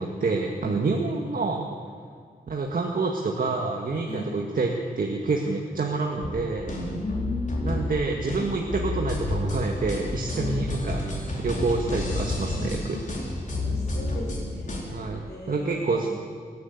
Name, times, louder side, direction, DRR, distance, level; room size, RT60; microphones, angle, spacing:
voice 1, 0.0-1.8 2.5-6.8 7.6-11.0 11.4-13.0 14.9-16.1, right 3 dB, 60° right, 1 dB, 1.8 m, -27 dB
sound 1, 6.2-14.8, left 2 dB, 50° left, 4.4 m, -30 dB
voice 2, 6.6-7.9 10.3-10.5 12.5-13.0 13.5-16.1, left 1 dB, 80° left, -4 dB, 4.7 m, -36 dB
29.5 x 11.5 x 8.2 m, 2.2 s
wide cardioid pair, 140°, 16 cm